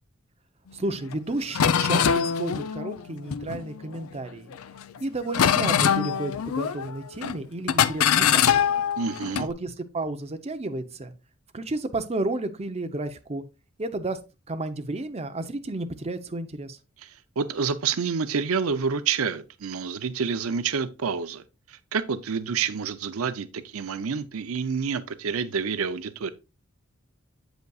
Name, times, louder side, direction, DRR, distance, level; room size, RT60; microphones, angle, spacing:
voice 1, 0.7-4.5 5.0-8.6 9.4-11.1 11.5-13.4 13.8-14.2 14.5-16.8, right 2 dB, 30° right, 0.7 m, -32 dB
sound 1, 1.1-1.2 1.5-4.0 4.5-5.0 5.3-7.0 7.2-7.4 7.7-9.5, left 8 dB, 75° left, 0.5 m, -23 dB
voice 2, 9.0-9.5 17.0-26.3, right 6 dB, 75° right, 0.6 m, -28 dB
8.0 x 8.0 x 2.3 m
head